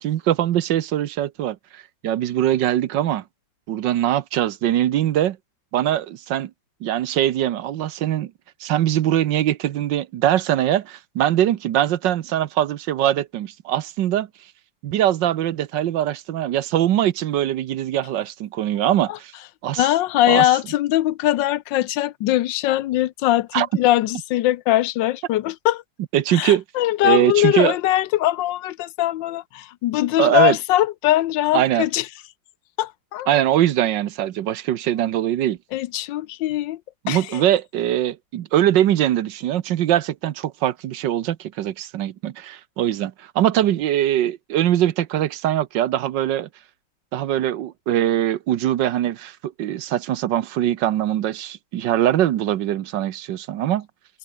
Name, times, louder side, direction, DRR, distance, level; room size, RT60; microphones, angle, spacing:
voice 1, 0.0-3.2 3.7-5.4 5.7-6.5 6.8-8.3 8.6-14.3 14.8-19.3 19.6-19.9 20.3-20.5 23.5-23.7 26.1-26.6 27.0-27.8 30.2-30.6 31.5-31.9 33.3-35.6 37.0-46.5 47.1-53.9, right 12 dB, 75° right, 1.5 m, -22 dB
voice 2, 19.8-25.8 26.3-32.1 32.8-33.4 35.7-36.8 37.1-37.4, left 14 dB, 80° left, 1.3 m, -21 dB
omnidirectional pair, 2.0 m